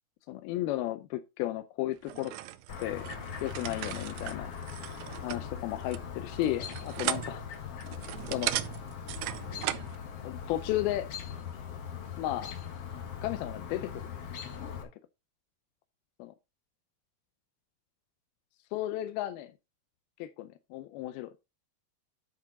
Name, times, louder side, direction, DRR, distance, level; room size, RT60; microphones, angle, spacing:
voice 1, 0.3-2.3 2.8-3.1 3.4-4.5 5.2-7.5 8.3-8.5 10.2-11.1 12.2-12.5 13.2-14.0 16.2-16.3 18.7-19.5 20.2-21.3, left 14 dB, 85° left, 2.5 m, -34 dB
sound 1, 2.0-10.0, right 14 dB, 80° right, 2.0 m, -38 dB
Chirp tweet, 2.7-14.8, left 7 dB, 55° left, 1.7 m, -41 dB
10.5 x 5.1 x 4.1 m
omnidirectional pair, 4.4 m